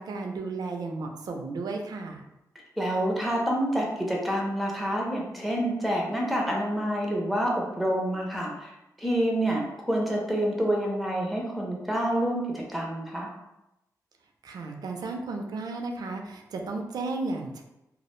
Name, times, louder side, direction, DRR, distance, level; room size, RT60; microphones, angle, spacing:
voice 1, 0.0-2.2 14.4-17.6, right 3 dB, 75° right, 3 dB, 0.4 m, -34 dB
voice 2, 2.8-8.7 9.0-13.3, right 1 dB, ahead, -2 dB, 0.4 m, -27 dB
2.3 x 2.0 x 3.0 m, 0.91 s
wide cardioid pair, 170°, 7 cm